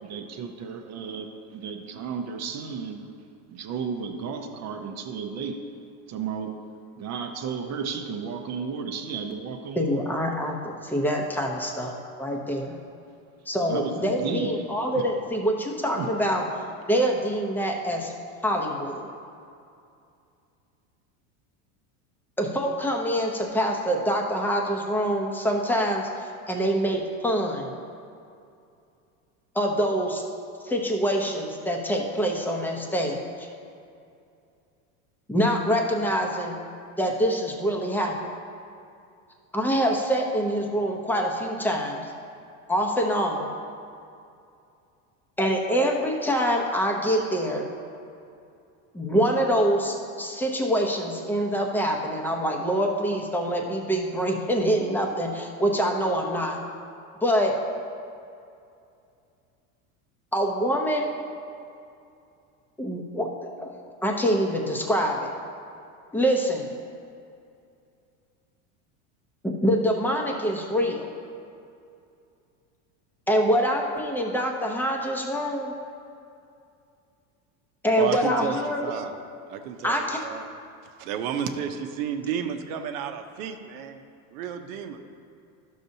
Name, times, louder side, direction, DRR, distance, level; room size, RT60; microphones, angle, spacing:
voice 1, 0.0-3.1 3.5-5.6 6.1-6.7 7.0-10.1 13.7-15.1 15.9-16.1, right 6 dB, 40° right, 5 dB, 0.6 m, -33 dB
voice 2, 9.8-10.6 10.8-12.7 13.5-16.4 16.9-18.1 18.4-19.1 22.4-27.7 29.5-30.2 30.6-33.5 35.3-36.6 37.0-38.1 39.5-42.1 42.7-43.5 45.4-47.7 48.9-56.6 57.2-57.5 60.3-61.1 62.8-63.3 63.6-63.7 64.0-65.3 66.1-66.7 69.4-71.1 73.3-75.7 77.8-78.9 79.8-80.2, equal, 5° left, 1 dB, 0.7 m, -25 dB
voice 3, 78.0-79.1 79.5-79.9 80.2-80.5 81.0-84.0 84.3-85.0, right 8 dB, 75° right, 6 dB, 0.8 m, -31 dB
11.5 x 6.6 x 2.7 m, 2.5 s
supercardioid pair, 125°, 43 cm